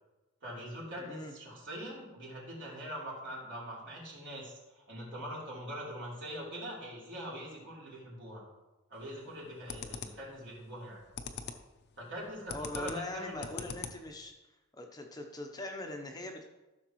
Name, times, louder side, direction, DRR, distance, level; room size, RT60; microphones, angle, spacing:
voice 1, 0.4-4.5 4.9-8.4 8.9-11.0 12.0-13.7, equal, 60° right, -5 dB, 3.4 m, -43 dB
voice 2, 1.0-1.3 12.5-14.3 14.7-16.4, left 1 dB, 20° left, 2 dB, 0.8 m, -41 dB
sound 1, 8.9-9.3 9.7-10.3 10.8-11.7 12.0-14.2, left 6 dB, 50° left, 0.7 m, -42 dB
14.0 x 6.5 x 3.1 m, 1.1 s
head